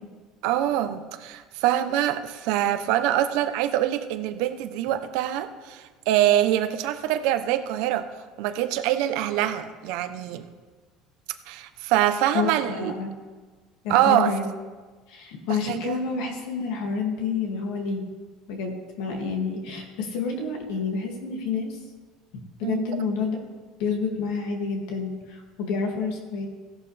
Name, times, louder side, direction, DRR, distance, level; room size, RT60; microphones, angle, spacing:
voice 1, 0.4-8.1 8.4-10.4 11.5-12.9 13.9-14.4 15.7-16.0 22.6-22.9, right 12 dB, 65° right, 9 dB, 0.8 m, -24 dB
voice 2, 12.3-13.1 13.8-14.5 15.1-18.0 18.5-21.8 22.6-23.4 23.8-26.5, left 5 dB, 75° left, 1 dB, 2.3 m, -29 dB
16.0 x 11.0 x 3.4 m, 1.4 s
cardioid pair, 165°, 0 cm